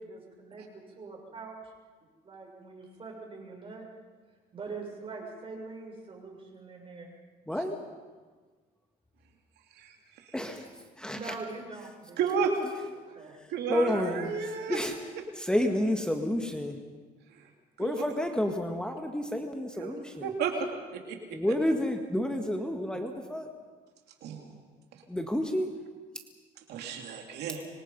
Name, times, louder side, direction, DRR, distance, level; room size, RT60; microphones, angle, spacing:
voice 1, 0.0-1.5 2.2-3.9 4.5-7.1 11.1-12.3 12.9-13.4, right 4 dB, 35° right, 0 dB, 7.2 m, -43 dB
voice 2, 10.3-10.7 11.0-11.3 13.7-14.4 14.7-14.9 15.3-16.8 17.8-20.3 21.3-23.5 25.1-25.7, left 1 dB, 5° left, 4 dB, 1.8 m, -30 dB
voice 3, 12.2-12.5 13.5-14.8 17.8-18.0 19.8-19.9 20.2-20.5 20.9-21.2 24.2-24.5 26.7-27.6, right 6 dB, 75° right, 3 dB, 2.8 m, -32 dB
25.5 x 24.5 x 5.5 m, 1.4 s
cardioid pair, 110°, 17 cm